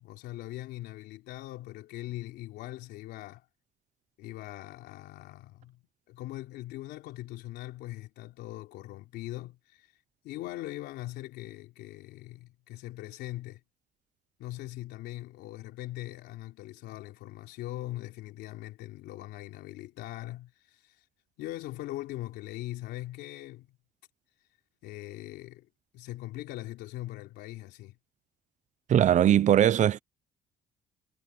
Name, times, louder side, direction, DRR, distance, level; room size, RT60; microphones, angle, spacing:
voice 1, 0.0-3.5 4.2-9.9 10.2-13.6 14.4-21.0 21.4-23.7 24.8-25.7 25.9-28.0, left 16 dB, 85° left, 3.7 m, -41 dB
voice 2, 28.9-30.0, right 10 dB, 45° right, 0.7 m, -20 dB
cardioid pair, 110°, 17 cm